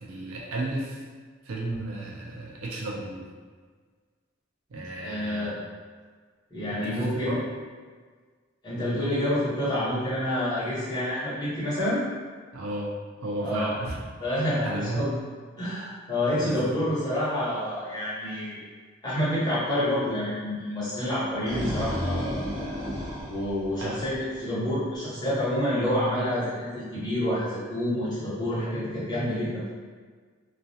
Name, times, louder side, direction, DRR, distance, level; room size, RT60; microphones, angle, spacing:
voice 1, 0.0-1.0 1.4-3.3 4.7-5.6 6.7-7.4 12.5-12.9 13.2-14.0 14.6-15.1 16.4-16.6 23.8-24.0, right 2 dB, 85° right, -3 dB, 0.5 m, -33 dB
voice 2, 5.0-5.5 6.5-7.3 8.6-12.0 13.4-13.7 14.2-15.1 15.6-18.6 19.0-22.4 23.3-29.7, left 1 dB, 20° left, -11 dB, 1.0 m, -28 dB
sound 1, 21.3-24.4, equal, 20° right, 1.0 m, -32 dB
2.3 x 2.1 x 2.7 m, 1.5 s
head